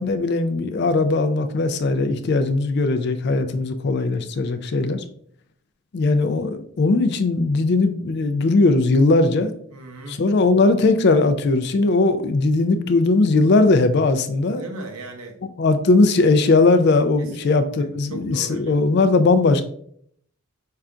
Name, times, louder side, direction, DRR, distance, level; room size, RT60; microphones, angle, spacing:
voice 1, 0.0-5.0 5.9-9.5 10.1-14.6 15.6-19.6, left 3 dB, 50° left, 9 dB, 0.4 m, -19 dB
voice 2, 9.7-10.2 14.6-15.4 17.2-18.8, right 2 dB, 90° right, 4 dB, 0.9 m, -38 dB
5.5 x 2.5 x 3.4 m, 0.66 s
head